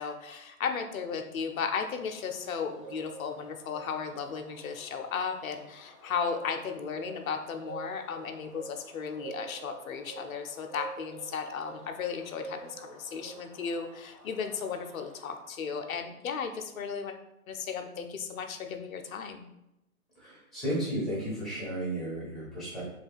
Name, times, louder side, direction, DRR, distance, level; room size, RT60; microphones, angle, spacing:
voice 1, 0.0-17.1 17.5-19.4, left 6 dB, 65° left, 5 dB, 0.6 m, -35 dB
Bird, 1.2-15.8, right 3 dB, 25° right, 0.3 m, -49 dB
voice 2, 20.1-22.9, right 1 dB, ahead, -8 dB, 0.8 m, -33 dB
3.2 x 2.3 x 3.4 m, 0.88 s
hypercardioid pair, 135°, 44 cm